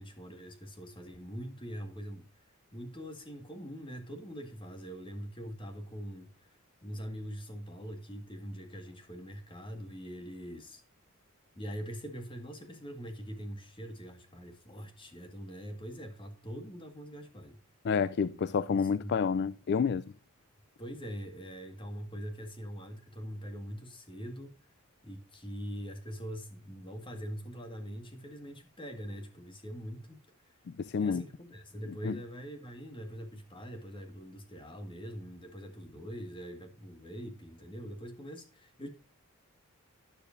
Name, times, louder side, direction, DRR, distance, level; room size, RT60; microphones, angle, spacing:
voice 1, 0.0-2.3 2.7-6.3 6.8-10.8 11.6-17.6 18.3-18.4 18.7-19.3 20.8-24.6 25.0-30.2 31.0-38.9, equal, 25° left, 1.8 m, -43 dB
voice 2, 17.8-20.0 30.7-31.2 32.0-32.2, left 6 dB, 50° left, 0.3 m, -29 dB
12.0 x 10.0 x 2.6 m
head